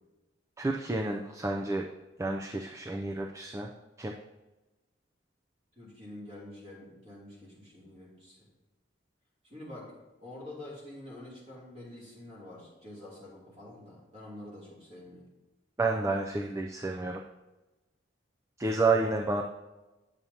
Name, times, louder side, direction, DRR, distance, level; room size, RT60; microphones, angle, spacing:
voice 1, 0.6-1.9 2.2-3.7 4.0-4.1 15.8-17.2 18.6-19.4, right 3 dB, 15° right, 2 dB, 0.3 m, -30 dB
voice 2, 5.7-8.5 9.4-9.9 10.2-15.3, left 1 dB, 30° right, -6 dB, 2.9 m, -47 dB
9.2 x 7.1 x 2.8 m, 1.1 s
head